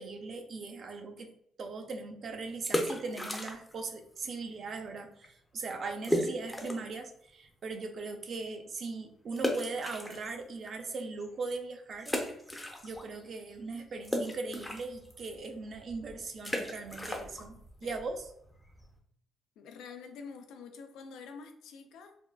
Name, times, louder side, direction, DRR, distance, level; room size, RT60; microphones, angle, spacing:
voice 1, 0.0-1.3 1.6-12.1 12.8-18.3, right 3 dB, 55° right, 5 dB, 0.4 m, -39 dB
sound 1, 2.5-3.9 4.1-4.2 4.8-5.0 5.2-5.3 6.0-7.0 7.4-7.5 9.4-10.7 11.2-11.3 12.0-13.2 13.5-19.0, left 1 dB, 10° left, 0.5 m, -35 dB
voice 2, 19.6-22.2, left 5 dB, 85° left, 6 dB, 0.4 m, -47 dB
3.5 x 2.1 x 2.2 m, 0.73 s
cardioid pair, 90°, 0 cm